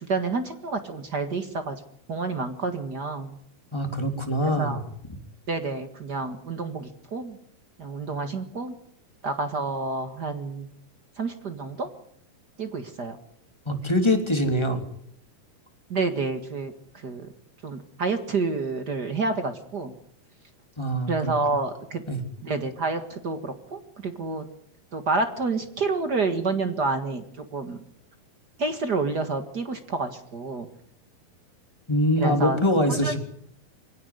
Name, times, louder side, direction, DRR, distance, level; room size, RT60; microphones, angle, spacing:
voice 1, 0.0-1.7 2.1-3.4 4.4-4.8 5.5-7.4 7.8-8.7 9.2-10.7 11.2-11.9 12.6-13.2 15.9-16.7 17.0-17.3 17.6-19.9 21.1-22.0 22.4-24.4 24.9-27.8 28.6-30.7 32.2-32.6 33.0-33.2, right 3 dB, 45° right, 8 dB, 1.3 m, -29 dB
voice 2, 3.7-4.8 13.7-14.8 20.8-21.3 22.1-22.2 31.9-33.2, equal, 10° left, 4 dB, 2.6 m, -23 dB
24.5 x 16.5 x 9.5 m, 0.66 s
omnidirectional pair, 4.5 m